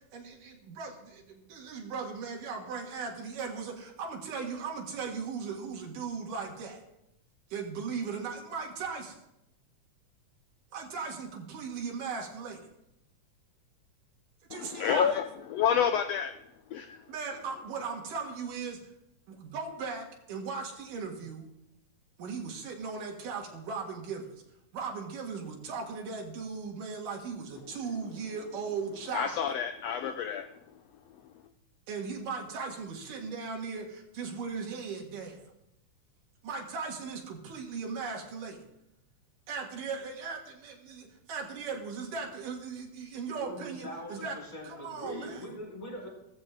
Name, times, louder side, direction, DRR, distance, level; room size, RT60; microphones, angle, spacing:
voice 1, 0.0-6.8 7.5-9.2 10.7-12.6 14.5-15.2 17.1-18.8 19.3-21.5 22.2-24.3 24.7-29.4 31.9-35.4 36.4-38.6 39.5-44.4 44.6-45.4, right 5 dB, 85° right, -1 dB, 3.4 m, -38 dB
voice 2, 14.5-15.2 15.5-16.3 16.7-17.0 29.1-30.6 31.2-31.3, left 8 dB, 90° left, 8 dB, 1.4 m, -29 dB
voice 3, 43.3-46.1, equal, 25° left, -3 dB, 5.5 m, -42 dB
15.0 x 14.5 x 3.7 m, 0.83 s
omnidirectional pair, 3.7 m